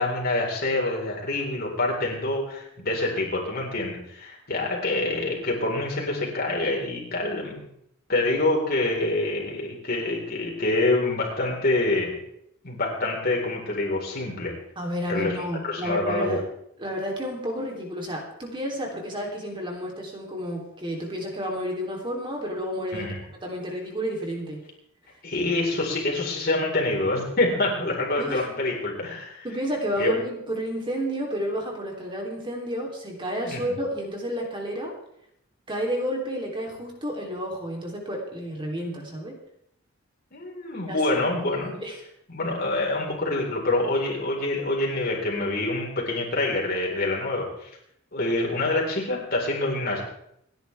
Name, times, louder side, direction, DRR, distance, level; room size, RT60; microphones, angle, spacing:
voice 1, 0.0-7.6 8.1-12.2 12.6-14.5 15.1-15.4 15.6-16.4 22.9-23.2 25.2-29.5 30.0-30.1 33.4-33.6 40.3-41.8 42.3-47.7 48.1-50.0, left 2 dB, 50° left, -2 dB, 4.5 m, -26 dB
voice 2, 14.7-16.4 16.8-23.1 23.4-24.6 28.2-28.4 29.4-35.0 35.7-39.4 40.9-41.0 41.4-41.9, equal, 25° right, 0 dB, 3.4 m, -31 dB
28.5 x 10.5 x 3.5 m, 0.74 s
head